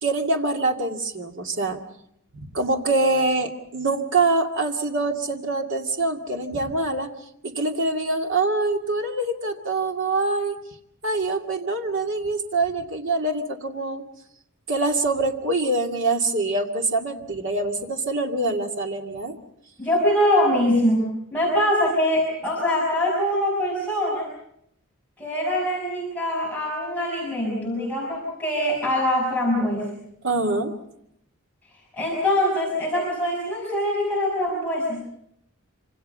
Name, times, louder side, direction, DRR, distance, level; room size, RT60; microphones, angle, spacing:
voice 1, 0.0-1.8 2.3-7.1 7.4-10.6 11.0-14.0 14.7-19.4 30.2-30.7, right 2 dB, 60° right, 3 dB, 2.4 m, -24 dB
voice 2, 19.8-24.3 25.2-29.9 31.9-35.0, left 1 dB, 10° left, -4 dB, 5.8 m, -23 dB
26.5 x 26.0 x 5.6 m, 0.75 s
head